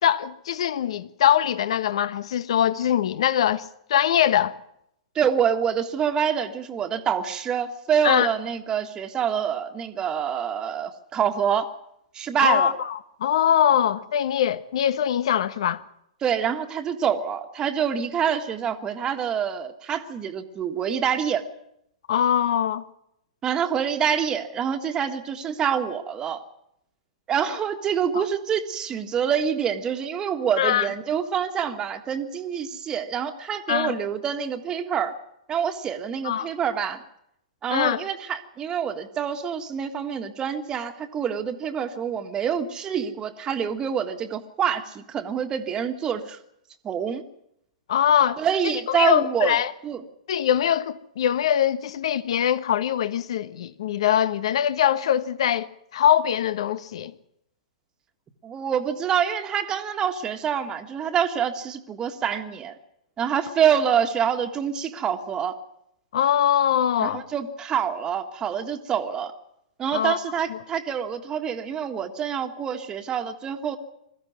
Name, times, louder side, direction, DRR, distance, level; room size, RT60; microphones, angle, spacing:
voice 1, 0.0-3.6 3.9-4.5 8.0-8.3 12.4-15.8 22.1-22.8 28.1-28.2 30.6-30.9 33.7-33.9 36.2-36.5 37.7-38.0 47.9-48.4 48.9-49.7 50.3-57.1 66.1-67.2 69.9-70.2 70.5-70.6, left 10 dB, 60° left, 1.2 m, -22 dB
voice 2, 5.1-11.7 12.1-12.7 16.2-21.4 23.4-26.4 27.3-35.2 35.5-37.0 37.6-46.4 46.8-47.2 48.4-49.5 49.8-50.0 58.4-62.7 63.2-65.6 67.0-69.3 69.8-73.8, right 8 dB, 20° right, 1.6 m, -26 dB
21.5 x 14.5 x 9.3 m
figure-of-eight pair, 110°, 3 cm